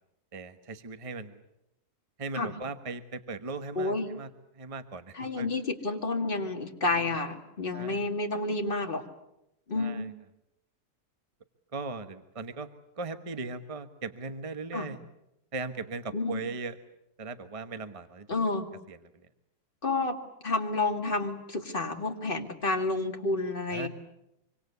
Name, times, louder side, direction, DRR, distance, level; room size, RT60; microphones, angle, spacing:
voice 1, 0.3-1.4 2.2-5.5 6.9-7.1 7.7-8.0 9.7-10.1 11.7-12.7 13.0-15.0 15.5-16.8 17.2-18.3 18.9-19.3 23.7-23.9, right 4 dB, 25° right, 10 dB, 1.2 m, -38 dB
voice 2, 3.8-4.1 5.1-9.0 9.7-10.1 14.7-14.9 16.1-16.4 18.3-18.7 19.8-20.2 20.4-23.9, left 2 dB, 35° left, 3 dB, 2.5 m, -30 dB
26.0 x 25.0 x 8.2 m, 0.86 s
omnidirectional pair, 1.6 m